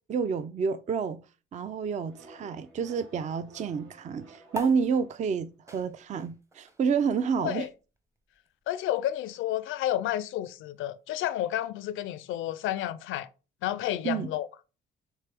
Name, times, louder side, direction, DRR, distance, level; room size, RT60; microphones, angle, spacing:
voice 1, 0.1-1.2 1.5-7.7 14.0-14.3, right 6 dB, 40° right, 0.4 m, -29 dB
sound 1, 2.1-5.6, right 2 dB, 80° right, 1.5 m, -54 dB
sound 2, 4.5-11.3, left 1 dB, 15° right, 0.7 m, -47 dB
voice 2, 7.4-7.7 8.7-13.3 13.6-14.5, left 13 dB, 85° left, 0.5 m, -31 dB
4.5 x 3.4 x 3.3 m
cardioid pair, 90°, 20 cm